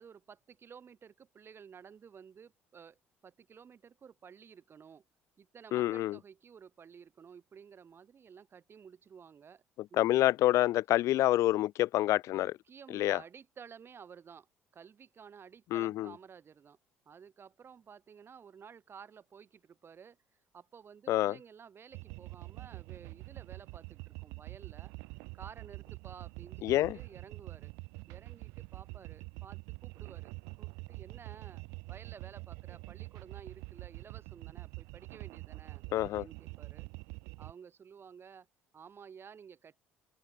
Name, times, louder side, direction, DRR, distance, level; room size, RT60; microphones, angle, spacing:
voice 1, 0.0-5.0 5.4-9.6 9.9-10.3 12.3-14.5 14.7-16.8 17.1-20.2 20.5-24.9 25.3-27.7 28.1-30.3 30.6-36.9 37.4-38.5 38.7-39.8, right 7 dB, 40° right, 2.7 m, -53 dB
voice 2, 5.7-6.2 10.0-12.5 12.9-13.2 15.7-16.1 21.1-21.3 26.6-27.0 35.9-36.3, left 15 dB, 60° left, 0.4 m, -27 dB
sound 1, 21.9-37.5, right 29 dB, 70° right, 1.5 m, -46 dB
hypercardioid pair, 60°, 6 cm